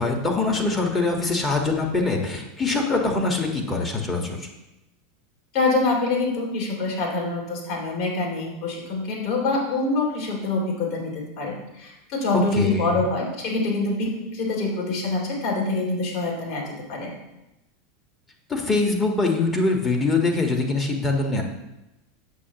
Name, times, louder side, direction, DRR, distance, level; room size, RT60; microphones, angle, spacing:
voice 1, 0.0-4.5 12.3-13.0 18.5-21.4, left 3 dB, 20° left, 3 dB, 1.5 m, -23 dB
voice 2, 5.5-17.1, left 3 dB, 55° left, -2 dB, 2.8 m, -25 dB
8.4 x 7.0 x 3.0 m, 0.95 s
hypercardioid pair, 85°, 0 cm